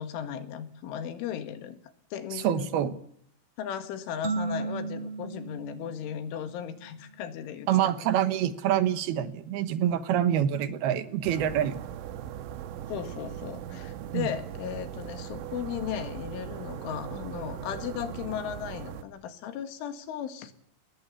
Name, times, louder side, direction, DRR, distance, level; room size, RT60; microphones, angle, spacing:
voice 1, 0.0-1.8 2.1-2.7 3.6-7.9 12.9-20.5, left 9 dB, 80° left, 9 dB, 4.3 m, -36 dB
voice 2, 2.3-2.9 7.7-11.8 14.1-14.3, right 10 dB, 65° right, 12 dB, 2.9 m, -26 dB
sound 1, 4.2-6.9, right 3 dB, 40° right, 3.2 m, -35 dB
sound 2, 11.2-19.0, right 10 dB, 90° right, 3.9 m, -39 dB
21.0 x 20.5 x 8.5 m, 0.66 s
omnidirectional pair, 5.5 m